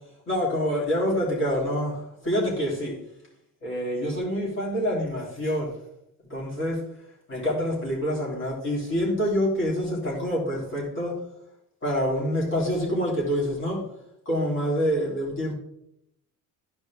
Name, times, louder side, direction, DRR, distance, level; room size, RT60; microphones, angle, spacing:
voice 1, 0.3-2.9 3.6-5.7 6.3-6.8 7.3-11.1 11.8-13.8 14.2-15.5, equal, 35° left, -4 dB, 3.3 m, -26 dB
12.5 x 5.1 x 3.6 m, 0.78 s
cardioid pair, 155°, 34 cm